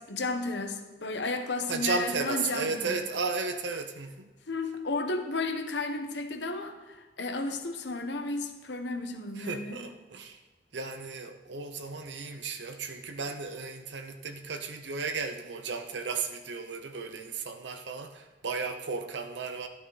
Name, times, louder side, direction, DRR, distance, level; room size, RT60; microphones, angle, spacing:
voice 1, 0.1-3.0 4.5-9.8, left 3 dB, 70° left, 7 dB, 1.2 m, -33 dB
voice 2, 1.7-4.3 9.3-10.4 10.7-19.7, right 4 dB, 75° right, 6 dB, 0.8 m, -34 dB
13.0 x 12.0 x 4.1 m, 1.2 s
head